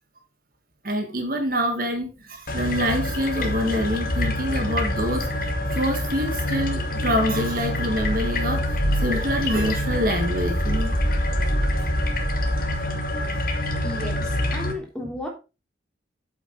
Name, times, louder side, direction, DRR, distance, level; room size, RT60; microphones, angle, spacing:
voice 1, 0.8-10.9, equal, 50° right, 1.6 m, -26 dB
sound 1, 2.5-14.7, left 1 dB, 50° left, 2.0 m, -25 dB
voice 2, 13.8-15.3, left 1 dB, 5° left, 3.4 m, -33 dB
8.5 x 7.7 x 4.5 m
head